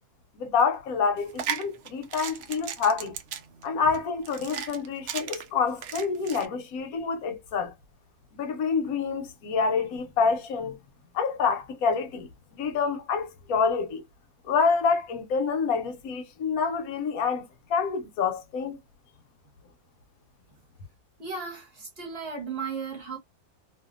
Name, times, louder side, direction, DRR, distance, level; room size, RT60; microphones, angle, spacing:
voice 1, 0.4-3.2 3.6-7.7 8.3-10.8 11.1-14.0 14.4-18.8, left 5 dB, 75° left, 1.1 m, -27 dB
sound 1, 1.2-6.5, right 8 dB, 75° right, 0.6 m, -36 dB
voice 2, 21.2-23.2, right 5 dB, 45° right, 1.1 m, -35 dB
2.7 x 2.3 x 2.4 m
omnidirectional pair, 1.6 m